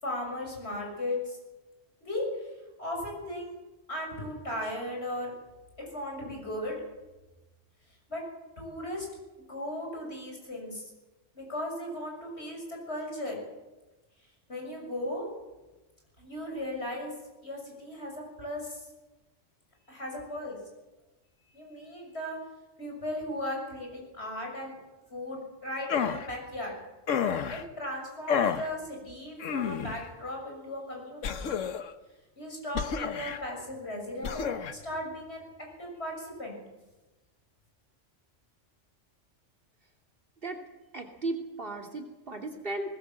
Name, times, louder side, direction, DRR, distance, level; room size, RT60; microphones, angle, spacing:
voice 1, 0.0-1.4 2.0-2.5 2.8-3.6 3.9-5.3 5.8-6.8 8.1-8.2 8.6-9.1 9.5-10.9 11.4-13.4 14.5-15.3 16.2-17.1 17.4-18.9 19.9-20.6 21.5-22.4 22.8-24.8 25.1-26.7 27.5-31.5 32.4-36.6, left 1 dB, 60° left, 0 dB, 7.2 m, -37 dB
sound 1, 25.9-26.3 27.1-27.6 28.3-28.7 29.4-30.0 31.2-31.9 32.7-33.4 34.2-34.7, left 7 dB, 85° left, 1.4 m, -30 dB
voice 2, 40.9-42.9, right 2 dB, 50° right, 3 dB, 2.9 m, -35 dB
21.0 x 19.5 x 7.6 m, 1.1 s
omnidirectional pair, 1.3 m